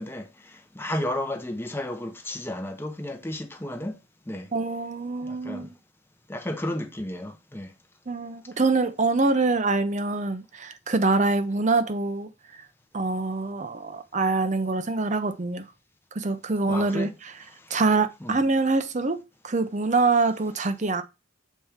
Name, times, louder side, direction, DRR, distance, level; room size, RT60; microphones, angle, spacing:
voice 1, 0.0-4.0 4.3-4.5 5.2-5.7 6.3-7.7 16.7-17.1 18.2-18.4, left 1 dB, 10° left, 0.8 m, -33 dB
voice 2, 4.5-5.7 8.1-12.3 12.9-15.6 16.1-17.3 17.7-21.0, right 3 dB, 35° right, 0.7 m, -25 dB
7.3 x 4.2 x 3.5 m
head